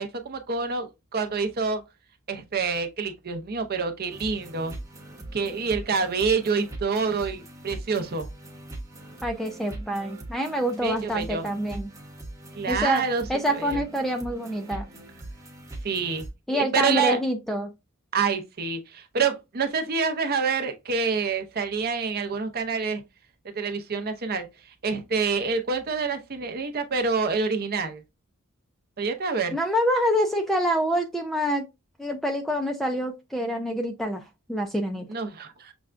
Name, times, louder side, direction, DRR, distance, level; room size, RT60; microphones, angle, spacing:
voice 1, 0.0-1.8 2.3-4.8 5.3-8.3 10.8-11.5 12.5-13.2 13.5-13.8 15.8-16.2 16.5-17.2 18.1-23.0 23.5-24.5 24.8-28.0 29.0-29.6 35.1-35.7, right 5 dB, 45° right, 0.6 m, -27 dB
sound 1, 4.1-16.3, right 1 dB, 15° right, 0.9 m, -41 dB
voice 2, 9.2-11.9 12.7-14.9 16.5-17.7 29.5-31.7 32.0-34.2 34.5-35.1, equal, ahead, 0.3 m, -26 dB
6.0 x 2.2 x 2.4 m
head